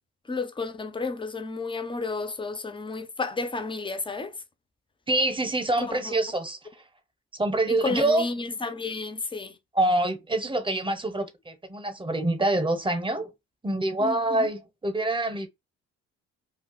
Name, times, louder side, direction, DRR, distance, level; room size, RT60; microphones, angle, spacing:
voice 1, 0.3-4.3 5.8-6.2 7.7-9.5 14.0-14.5, left 3 dB, 15° left, 0.5 m, -32 dB
voice 2, 5.1-6.6 7.4-8.2 9.7-13.3 13.6-15.5, right 2 dB, 15° right, 0.8 m, -26 dB
2.4 x 2.3 x 3.8 m
supercardioid pair, 70°, 31 cm